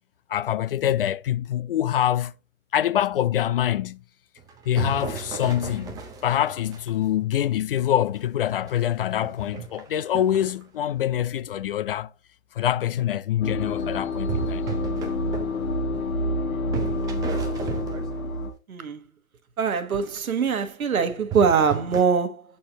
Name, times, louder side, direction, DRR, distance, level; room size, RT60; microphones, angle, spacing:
voice 1, 0.3-2.3 2.7-4.0 4.7-12.1 12.5-14.7, left 11 dB, 45° left, 0.4 m, -25 dB
sound 1, 4.4-7.2 7.7-7.8 8.3-10.6 14.3-16.4 16.7-18.5 21.3-22.0, right 6 dB, 10° right, 0.6 m, -35 dB
sound 2, 13.4-18.5, left 1 dB, 75° left, 2.0 m, -27 dB
voice 2, 18.7-19.0 19.6-22.4, right 6 dB, 85° right, 1.4 m, -23 dB
7.7 x 4.3 x 3.8 m
hypercardioid pair, 135°, 41 cm